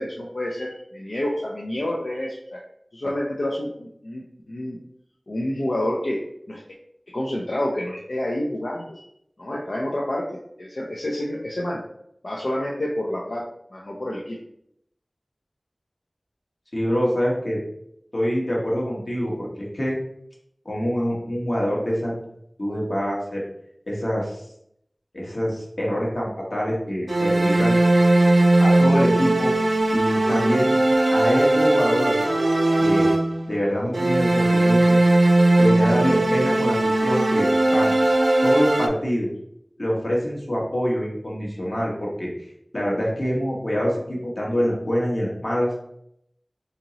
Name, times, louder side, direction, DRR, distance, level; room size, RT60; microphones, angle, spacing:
voice 1, 0.0-2.6 2.9-4.8 5.3-6.2 6.5-6.6 7.1-9.1 9.4-10.3 10.6-11.8 12.2-13.4 13.7-14.4, left 1 dB, 85° left, -3 dB, 0.4 m, -28 dB
voice 2, 16.7-17.6 18.1-20.0 20.6-22.2 22.6-23.4 23.9-24.4 25.1-27.8 28.6-29.5 29.9-30.7 31.1-32.2 32.8-33.1 33.5-35.0 35.6-37.9 38.4-39.3 39.8-42.5 42.7-45.7, equal, 60° left, -4 dB, 1.2 m, -25 dB
sound 1, 27.1-33.5 33.9-38.9, right 2 dB, 85° right, 0.4 m, -19 dB
2.9 x 2.8 x 3.8 m, 0.74 s
wide cardioid pair, 50°, 0 cm